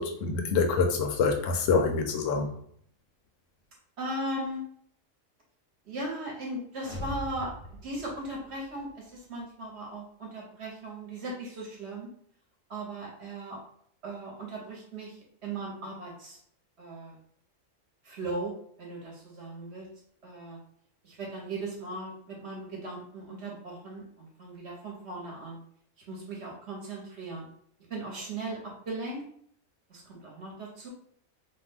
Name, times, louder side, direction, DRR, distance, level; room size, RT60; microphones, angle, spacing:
voice 1, 0.0-2.5, left 4 dB, 70° left, 0.9 m, -26 dB
voice 2, 4.0-4.6 5.8-12.1 12.7-13.6 14.0-16.4 16.8-17.2 18.0-19.9 20.2-20.6 21.0-25.6 26.1-27.5 27.9-29.2 29.9-30.9, right 2 dB, 55° right, 1.0 m, -38 dB
sound 1, 6.8-8.9, right 1 dB, 45° left, 0.7 m, -41 dB
2.7 x 2.1 x 3.3 m
omnidirectional pair, 1.4 m